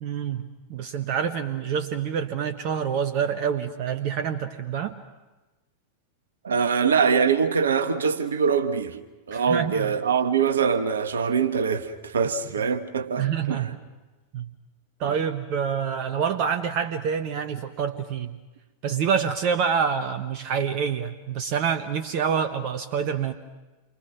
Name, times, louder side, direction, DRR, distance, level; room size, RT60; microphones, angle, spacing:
voice 1, 0.0-4.9 9.3-10.0 13.2-13.7 14.3-14.5 15.0-18.4 18.8-23.3, right 7 dB, 45° right, 1.1 m, -27 dB
voice 2, 6.4-9.0 9.3-13.7 15.0-15.2, right 6 dB, 65° right, 1.5 m, -23 dB
28.5 x 24.5 x 6.1 m
figure-of-eight pair, 90°, 0 cm